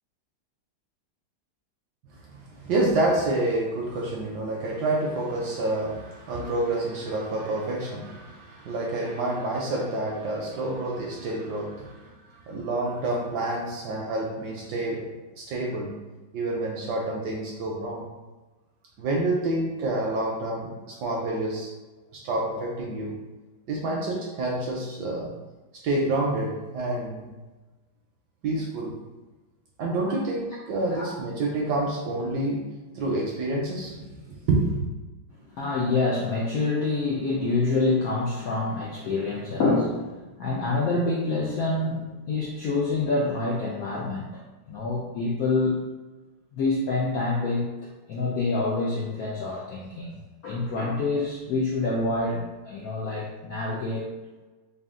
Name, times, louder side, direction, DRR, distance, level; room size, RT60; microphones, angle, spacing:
voice 1, 2.3-15.1 15.4-15.9 16.3-18.1 19.0-21.7 22.1-23.2 23.7-25.3 25.8-27.3 28.4-29.0 29.8-32.6 32.9-34.9, right 2 dB, 75° right, -2 dB, 1.0 m, -28 dB
voice 2, 35.6-45.8 46.5-47.7 48.1-54.1, left 3 dB, 85° left, -3 dB, 0.8 m, -27 dB
4.1 x 2.3 x 3.6 m, 1.2 s
omnidirectional pair, 2.2 m